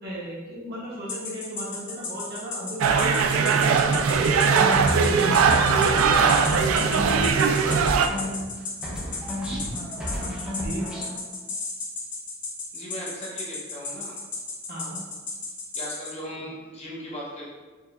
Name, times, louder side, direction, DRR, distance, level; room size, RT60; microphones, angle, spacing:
voice 1, 0.0-3.6 3.9-7.6 10.6-10.8 14.7-15.0 16.3-16.4, equal, 50° right, -7 dB, 1.2 m, -36 dB
sound 1, 1.1-16.1, left 4 dB, 60° left, 1.2 m, -33 dB
sound 2, 2.8-8.1, right 6 dB, 85° right, 0.3 m, -20 dB
sound 3, 4.1-8.5 8.8-11.2, equal, 5° right, 0.7 m, -31 dB
voice 2, 12.7-14.2 15.7-17.4, equal, 30° left, -6 dB, 1.0 m, -38 dB
4.7 x 3.4 x 2.2 m, 1.3 s
head